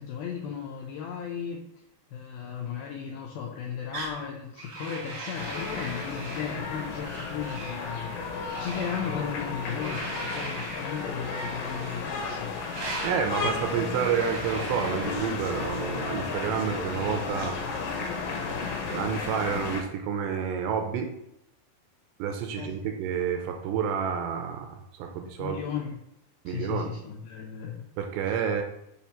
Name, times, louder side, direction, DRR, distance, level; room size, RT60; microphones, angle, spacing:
voice 1, 0.0-1.6 2.1-8.1 8.4-12.5 13.4-13.8 22.6-22.9 25.4-26.0 26.5-27.7, left 7 dB, 90° left, -1 dB, 2.1 m, -35 dB
sound 1, 3.9-4.2 4.6-6.6 7.0-7.8 8.4-9.2 9.8-10.9 11.6-12.1 12.7-13.2 13.9-15.6, right 2 dB, 65° right, 1.6 m, -39 dB
sound 2, 5.3-19.8, left 4 dB, 70° left, 2.4 m, -33 dB
voice 2, 13.0-17.6 18.6-18.7 18.9-21.1 22.2-25.6 26.5-26.9 28.0-28.6, right 7 dB, 80° right, 5 dB, 2.7 m, -29 dB
6.7 x 2.9 x 5.7 m, 0.81 s
omnidirectional pair, 5.1 m